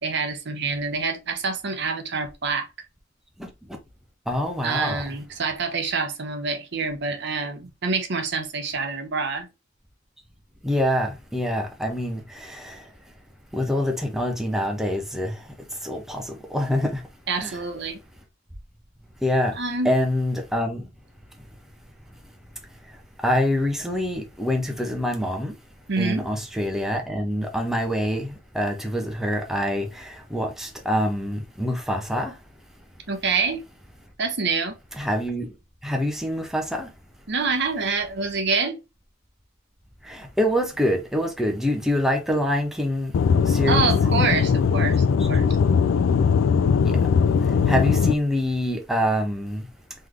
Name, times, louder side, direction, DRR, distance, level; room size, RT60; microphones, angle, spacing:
voice 1, 0.0-2.7 4.6-9.5 17.3-18.0 19.5-19.9 25.9-26.2 33.1-33.6 34.2-34.8 37.3-38.8 43.7-45.5, right 4 dB, 65° right, 0.9 m, -26 dB
voice 2, 4.3-5.0 10.6-12.8 13.5-15.4 15.8-17.0 17.4-17.6 19.2-19.6 19.8-20.8 23.2-25.5 26.0-32.4 35.0-35.5 35.8-36.9 40.0-43.1 43.4-43.9 45.2-45.3 46.8-47.0 47.7-49.7, equal, ahead, 0.8 m, -25 dB
Aircraft / Engine, 43.1-48.1, left 6 dB, 85° left, 0.3 m, -20 dB
3.9 x 3.3 x 3.2 m
head